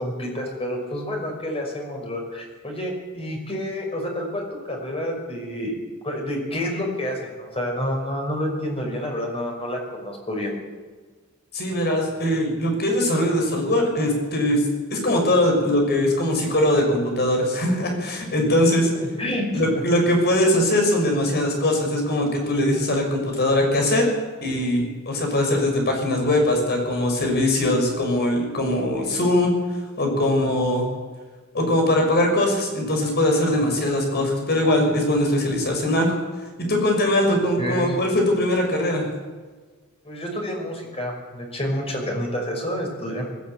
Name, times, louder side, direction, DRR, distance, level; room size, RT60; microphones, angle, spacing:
voice 1, 0.0-5.7 6.0-10.5 18.9-19.8 37.6-38.0 40.0-43.3, equal, 25° left, 1 dB, 5.5 m, -29 dB
voice 2, 11.5-14.6 14.9-18.9 19.5-24.1 24.4-29.5 30.0-30.9 31.5-36.2 36.7-39.1, left 1 dB, 50° left, 2 dB, 5.7 m, -21 dB
19.5 x 15.0 x 9.0 m, 1.4 s
head